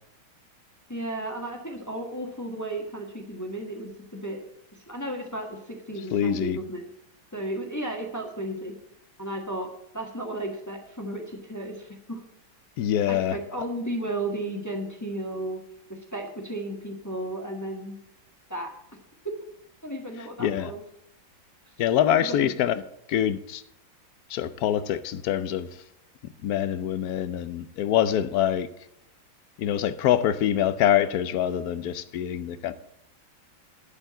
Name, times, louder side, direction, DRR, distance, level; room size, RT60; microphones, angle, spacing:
voice 1, 0.9-4.4 4.9-6.9 7.3-8.7 9.2-9.7 9.9-12.2 13.1-15.6 15.9-18.0 18.5-18.7 19.8-20.8 22.1-22.5, right 1 dB, 10° left, 1.1 m, -34 dB
voice 2, 6.1-6.6 12.8-13.4 20.4-20.7 21.8-22.8 23.1-23.6 24.3-25.7 26.4-28.7 29.6-32.7, left 10 dB, 70° left, 0.9 m, -25 dB
11.5 x 4.5 x 8.2 m
omnidirectional pair, 2.2 m